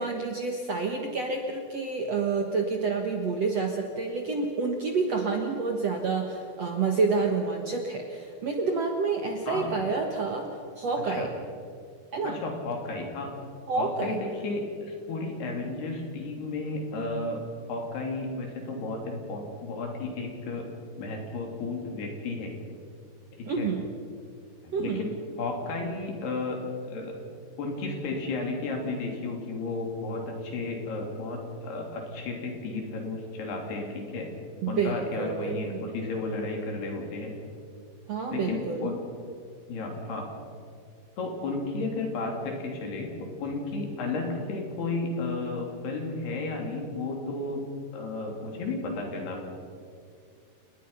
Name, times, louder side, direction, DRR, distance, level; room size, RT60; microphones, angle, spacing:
voice 1, 0.0-10.5 10.8-11.3 12.1-12.4 13.7-14.2 23.5-23.9 24.7-25.1 34.6-35.8 38.1-38.9, right 4 dB, 60° right, 3 dB, 1.8 m, -28 dB
voice 2, 12.2-13.3 13.8-17.4 17.7-20.7 21.0-22.5 23.3-23.7 24.6-25.1 25.4-26.6 26.8-27.1 27.6-34.3 34.7-37.3 38.3-39.0 39.7-40.3 41.2-43.1 43.4-47.6 47.9-49.4, left 3 dB, 70° left, 1 dB, 5.2 m, -33 dB
29.5 x 19.5 x 5.7 m, 2.2 s
omnidirectional pair, 4.8 m